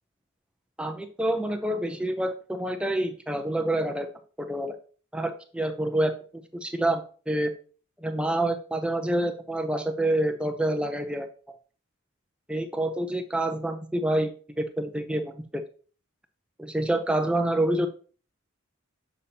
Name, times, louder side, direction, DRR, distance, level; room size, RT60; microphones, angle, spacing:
voice 1, 0.8-4.1 4.4-4.8 5.1-6.1 6.5-7.5 8.0-11.3 12.5-15.6 16.6-17.9, right 1 dB, 5° right, 6 dB, 0.5 m, -27 dB
6.8 x 5.5 x 2.8 m, 0.41 s
head